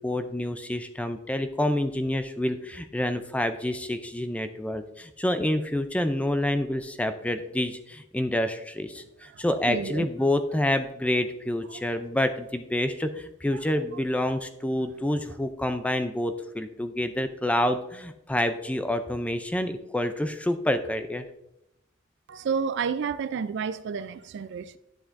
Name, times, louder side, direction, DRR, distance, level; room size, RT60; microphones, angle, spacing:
voice 1, 0.0-21.2, left 1 dB, 5° left, 0.4 m, -28 dB
voice 2, 9.3-10.1 22.3-24.8, right 6 dB, 65° right, 0.4 m, -30 dB
10.5 x 7.1 x 2.5 m
head